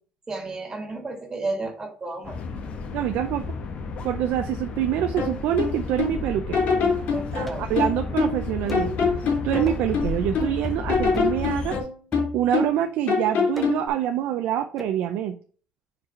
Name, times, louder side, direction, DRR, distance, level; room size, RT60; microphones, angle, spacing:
voice 1, 0.3-2.4 7.1-7.9, right 3 dB, 20° right, 3 dB, 1.9 m, -33 dB
sound 1, 2.2-11.8, left 4 dB, 45° left, 1.1 m, -33 dB
voice 2, 2.9-3.4 4.0-6.6 7.3-8.9 9.4-11.8 12.3-15.3, right 11 dB, 80° right, 7 dB, 0.6 m, -25 dB
sound 2, 5.2-6.2 6.5-8.4 8.7-10.5 10.9-12.8 13.1-13.9, left 5 dB, 60° left, 2.3 m, -24 dB
sound 3, 7.5-7.8 8.7-9.0 9.7-10.0 10.6-10.9 11.1-11.4 12.1-12.7 13.6-14.0 14.8-15.0, equal, 5° left, 1.0 m, -38 dB
4.8 x 4.7 x 5.8 m, 0.42 s
cardioid pair, 140°, 3 cm